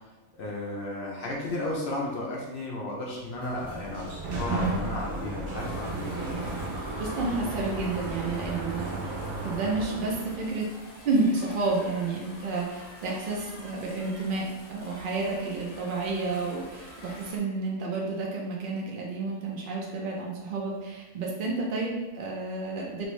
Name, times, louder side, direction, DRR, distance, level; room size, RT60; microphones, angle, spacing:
voice 1, 0.3-6.1, left 2 dB, 70° left, -3 dB, 0.5 m, -34 dB
Sliding door, 3.2-10.6, right 2 dB, 55° right, 0.8 m, -34 dB
sound 1, 5.6-17.4, left 1 dB, 55° left, 0.9 m, -47 dB
voice 2, 7.0-9.2 9.4-10.7 11.0-23.1, right 3 dB, 80° right, -2 dB, 0.4 m, -30 dB
3.1 x 2.6 x 3.1 m, 1.1 s
omnidirectional pair, 1.5 m